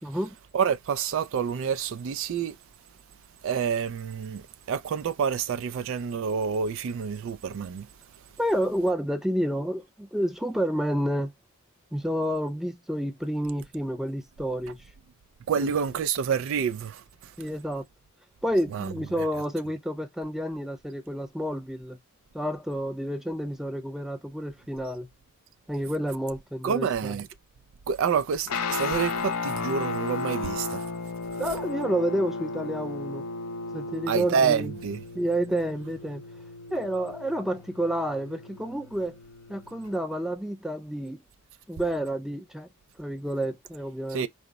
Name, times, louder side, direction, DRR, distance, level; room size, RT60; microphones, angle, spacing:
voice 1, 0.0-0.4 8.4-11.3 11.9-14.8 15.6-15.8 17.4-17.8 18.4-22.0 22.3-25.1 25.7-27.2 31.4-33.3 33.7-34.7 35.1-36.2 36.7-39.2 39.5-41.2 41.7-42.7 43.0-44.3, right 1 dB, ahead, 0.5 m, -29 dB
voice 2, 0.5-2.6 3.4-7.9 15.5-17.0 18.7-18.9 26.6-27.3 27.9-30.9 34.1-35.0 44.1-44.3, right 7 dB, 60° right, 0.3 m, -28 dB
Guitar, 28.5-39.9, left 3 dB, 80° left, 0.5 m, -34 dB
4.7 x 2.0 x 3.8 m
head